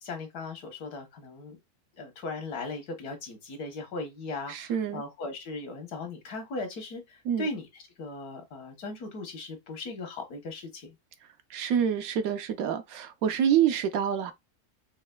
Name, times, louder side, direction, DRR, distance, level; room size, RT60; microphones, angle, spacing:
voice 1, 0.0-1.6 2.0-7.7 8.0-10.9, left 3 dB, 75° left, 1.5 m, -38 dB
voice 2, 4.5-5.0 7.3-7.5 11.5-14.3, right 9 dB, 70° right, 1.0 m, -27 dB
5.4 x 2.8 x 2.2 m
omnidirectional pair, 1.6 m